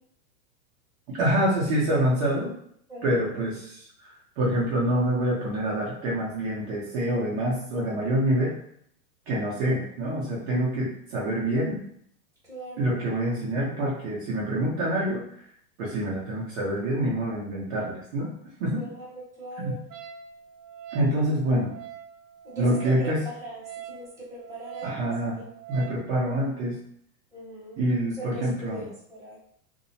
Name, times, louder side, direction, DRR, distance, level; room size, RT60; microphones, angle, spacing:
voice 1, 1.1-2.5 3.0-8.6 9.3-11.8 12.8-15.3 15.8-18.3 18.6-18.8 19.6-19.7 20.9-21.7 22.6-23.2 24.8-25.4 25.7-26.8 27.8-28.8, right 1 dB, 45° right, -5 dB, 0.8 m, -26 dB
voice 2, 2.9-3.2 12.5-13.0 18.8-19.8 22.4-24.9 27.3-27.8 28.1-29.4, right 1 dB, 5° right, -10 dB, 1.1 m, -40 dB
Wind instrument woodwind instrument, 19.9-26.1, right 10 dB, 90° right, 0.6 m, -43 dB
2.6 x 2.0 x 2.7 m, 0.67 s
supercardioid pair, 145°, 46 cm